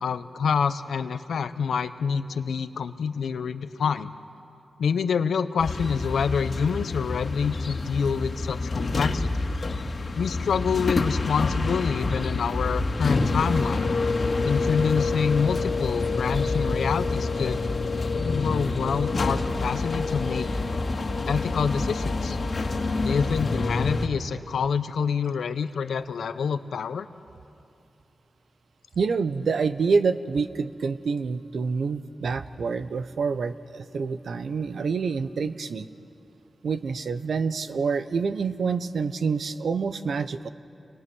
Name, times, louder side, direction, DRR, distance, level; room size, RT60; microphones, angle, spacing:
voice 1, 0.0-4.1 4.8-9.5 10.2-13.9 14.4-17.6 18.1-20.5 21.2-22.4 23.0-27.1, left 6 dB, 90° left, 12 dB, 0.8 m, -27 dB
Filling Car, 5.6-24.1, left 3 dB, 60° left, 2.0 m, -27 dB
voice 2, 29.0-35.9 36.6-40.5, right 5 dB, 80° right, 12 dB, 0.8 m, -27 dB
29.5 x 21.5 x 6.2 m, 2.7 s
cardioid pair, 50°, 0 cm